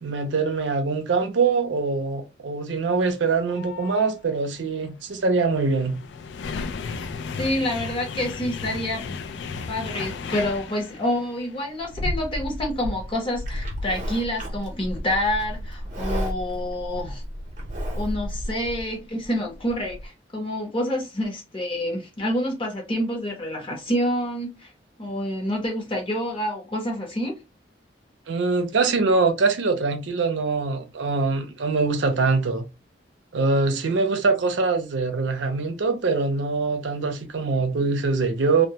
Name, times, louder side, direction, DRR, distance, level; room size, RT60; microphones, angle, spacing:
voice 1, 0.0-6.0 28.3-32.7 33.3-38.7, right 4 dB, 80° right, 0.5 m, -23 dB
sound 1, 3.3-4.1 5.0-20.1, left 3 dB, 70° left, 0.3 m, -35 dB
voice 2, 7.4-9.2 9.7-17.2 17.9-24.7 25.0-27.3, left 1 dB, 30° left, 0.8 m, -28 dB
Livestock farm animals working animals, 13.5-18.5, equal, 40° right, 0.7 m, -33 dB
2.1 x 2.1 x 2.8 m
head